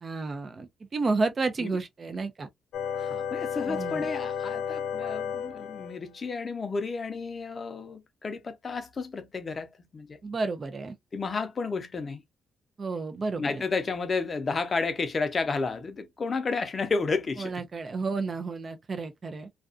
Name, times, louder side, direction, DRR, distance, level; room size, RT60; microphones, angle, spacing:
voice 1, 0.0-2.5 3.7-4.1 10.2-10.9 12.8-13.6 17.4-19.5, right 3 dB, 35° right, 0.5 m, -31 dB
sound 1, 2.7-6.0, left 7 dB, 80° left, 0.4 m, -32 dB
voice 2, 3.0-10.2 11.1-12.2 13.4-17.5, left 4 dB, 35° left, 0.6 m, -31 dB
2.5 x 2.2 x 2.4 m
cardioid pair, 90°, 0 cm